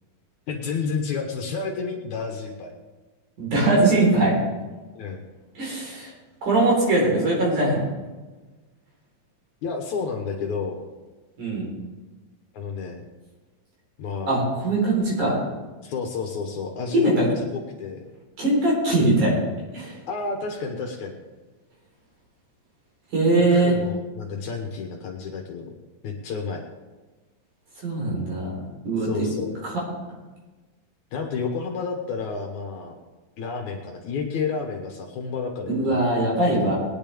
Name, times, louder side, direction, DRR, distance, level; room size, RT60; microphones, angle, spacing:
voice 1, 0.5-2.7 5.0-5.2 9.6-10.8 12.5-13.0 14.0-14.4 15.8-18.0 20.1-21.2 23.5-25.7 26.0-26.6 29.0-29.6 31.1-33.0 33.4-36.3, left 5 dB, 65° left, 2 dB, 2.4 m, -31 dB
voice 2, 3.4-4.4 5.6-6.1 6.4-7.8 11.4-11.7 14.3-15.4 16.9-17.2 18.4-19.3 19.7-19.9 23.1-23.8 27.8-28.5 28.8-29.3 29.6-29.7 35.7-36.8, right 2 dB, 60° right, -3 dB, 5.6 m, -21 dB
20.5 x 9.9 x 3.5 m, 1.3 s
omnidirectional pair, 4.0 m